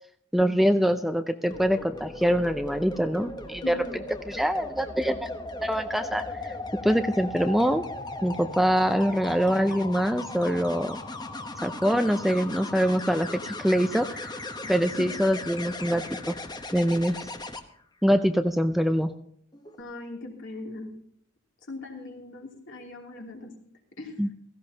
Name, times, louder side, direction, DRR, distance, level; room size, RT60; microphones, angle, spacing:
voice 1, 0.3-3.7 4.3-5.3 5.6-6.5 6.8-7.8 8.2-11.0 11.6-14.3 14.7-16.4 16.7-17.2 18.0-19.1 24.2-24.3, equal, ahead, 8 dB, 0.5 m, -24 dB
sound 1, 1.5-17.6 19.5-19.8, left 2 dB, 20° left, 1.0 m, -37 dB
voice 2, 3.6-4.0 14.6-15.2 19.8-20.9 21.7-23.5 24.0-24.2, left 2 dB, 60° left, 0 dB, 3.0 m, -40 dB
16.5 x 15.5 x 2.8 m, 0.64 s
head